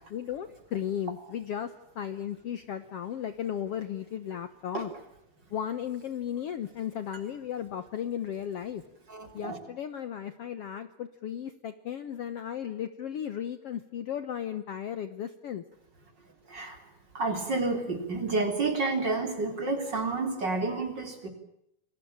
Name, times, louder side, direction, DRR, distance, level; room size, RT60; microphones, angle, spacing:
voice 1, 0.0-4.9 5.5-8.8 9.3-15.6, left 9 dB, 85° left, 11 dB, 1.3 m, -35 dB
voice 2, 9.1-9.6 16.5-16.8 17.1-21.3, right 3 dB, 30° right, 6 dB, 4.2 m, -30 dB
28.5 x 21.0 x 8.8 m, 0.80 s
omnidirectional pair, 4.4 m